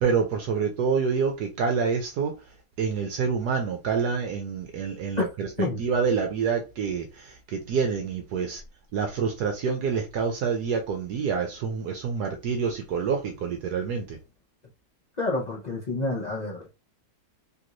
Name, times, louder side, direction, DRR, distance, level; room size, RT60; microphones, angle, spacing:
voice 1, 0.0-2.3 2.8-5.5 5.8-8.6 8.9-14.2, right 5 dB, 70° right, 1.1 m, -27 dB
voice 2, 15.2-16.8, left 2 dB, 80° left, 0.3 m, -29 dB
3.4 x 3.0 x 2.5 m
omnidirectional pair, 1.9 m